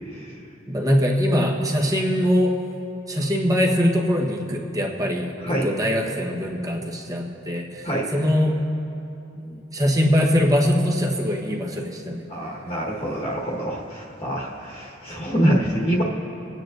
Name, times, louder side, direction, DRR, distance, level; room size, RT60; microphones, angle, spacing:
voice 1, 0.7-2.6 3.1-8.6 9.7-12.2, equal, 20° right, 0 dB, 1.2 m, -22 dB
voice 2, 12.3-16.0, right 1 dB, 30° left, -3 dB, 1.4 m, -25 dB
23.5 x 9.4 x 2.6 m, 2.8 s
head